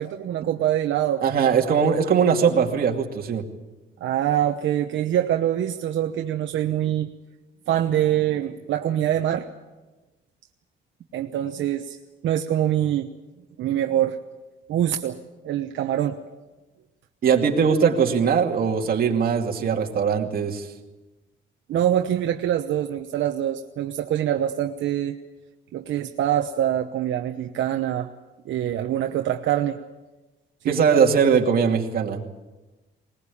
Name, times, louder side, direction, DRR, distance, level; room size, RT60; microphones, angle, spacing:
voice 1, 0.0-1.5 4.0-7.1 7.7-9.5 11.1-12.0 12.2-13.1 13.6-14.2 14.7-15.2 15.4-16.2 21.7-25.2 25.7-28.1 28.4-29.8 30.6-30.8, right 11 dB, 75° right, 5 dB, 1.0 m, -24 dB
voice 2, 1.2-3.4 17.2-20.7 30.7-32.2, right 6 dB, 50° right, 2 dB, 2.5 m, -20 dB
20.5 x 20.5 x 8.6 m, 1.1 s
cardioid pair, 165°, 20 cm